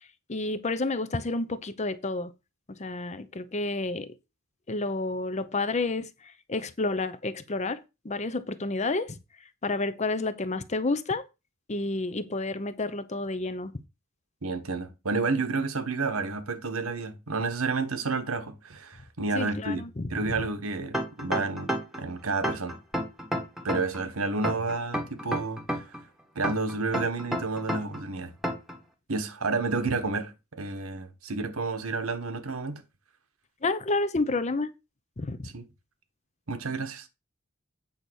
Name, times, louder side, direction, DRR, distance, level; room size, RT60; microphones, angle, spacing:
voice 1, 0.3-2.3 2.8-4.1 4.7-6.1 6.5-7.8 8.0-9.2 9.6-11.2 11.7-13.7 19.3-20.1 33.6-34.7 35.2-35.5, left 2 dB, 35° left, 0.7 m, -30 dB
voice 2, 14.4-22.8 23.6-25.9 26.3-28.3 29.1-32.8 35.4-35.6 36.5-37.1, right 3 dB, 90° right, 1.3 m, -30 dB
sound 1, 20.9-22.0 22.4-24.0 24.4-26.0 26.4-28.0 28.4-28.8, equal, ahead, 1.2 m, -30 dB
8.6 x 4.0 x 6.3 m
head